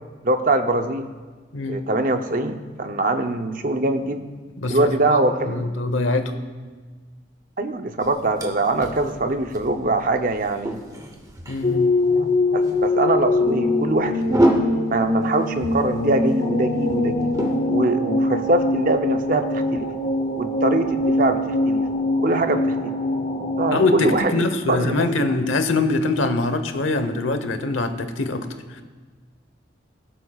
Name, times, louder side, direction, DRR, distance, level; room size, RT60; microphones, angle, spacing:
voice 1, 0.2-1.1 1.7-4.3 4.7-5.7 7.6-10.8 12.1-14.5 14.9-17.3 17.6-19.9 20.4-21.8 22.2-22.9 23.6-25.1, right 2 dB, 45° right, 7 dB, 0.6 m, -23 dB
voice 2, 1.5-1.9 4.6-5.2 5.5-6.3 11.5-12.0 23.7-28.8, left 2 dB, 90° left, 8 dB, 1.0 m, -23 dB
sound 1, 8.0-22.0, right 1 dB, 20° right, 0.9 m, -30 dB
sound 2, 11.6-24.2, left 2 dB, 40° left, 0.7 m, -23 dB
17.5 x 11.5 x 2.4 m, 1.4 s
head